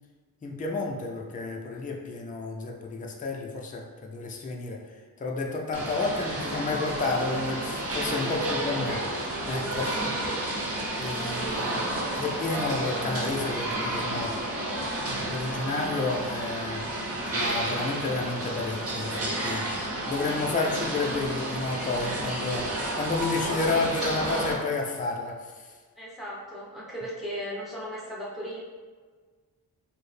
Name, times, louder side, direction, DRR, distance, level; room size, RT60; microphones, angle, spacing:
voice 1, 0.4-9.0 9.5-10.2 11.0-14.4 15.0-16.9 17.2-22.7 23.0-25.7, left 3 dB, 20° left, 0 dB, 0.4 m, -31 dB
sound 1, 5.7-24.5, right 1 dB, 40° right, 0.7 m, -31 dB
voice 2, 8.5-9.0 10.2-10.4 26.0-28.6, equal, ahead, -6 dB, 1.0 m, -37 dB
4.3 x 2.1 x 3.2 m, 1.5 s
wide cardioid pair, 125°, 38 cm